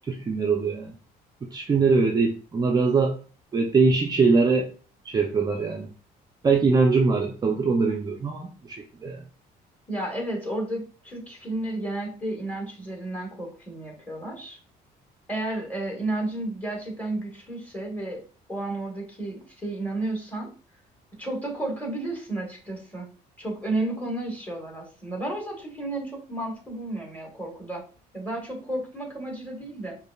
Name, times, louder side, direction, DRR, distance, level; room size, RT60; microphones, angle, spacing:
voice 1, 0.1-0.9 1.4-3.2 3.5-4.7 5.0-5.9 6.4-9.2, right 4 dB, 25° right, 2 dB, 0.4 m, -22 dB
voice 2, 9.9-14.6 15.3-18.2 18.5-20.5 21.2-23.1 23.4-27.8 28.1-30.0, right 2 dB, 10° left, 0 dB, 1.5 m, -32 dB
5.0 x 2.5 x 2.3 m, 0.37 s
cardioid pair, 110°, 17 cm